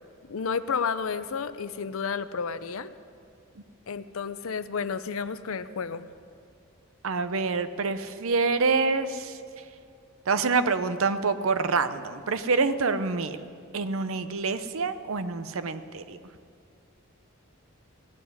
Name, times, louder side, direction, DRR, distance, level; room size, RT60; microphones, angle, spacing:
voice 1, 0.3-2.9 3.9-6.1, left 6 dB, 75° left, 13 dB, 0.6 m, -31 dB
voice 2, 7.0-9.4 10.3-13.4 13.7-16.2, right 4 dB, 75° right, 11 dB, 0.7 m, -26 dB
17.0 x 7.1 x 9.6 m, 2.4 s
head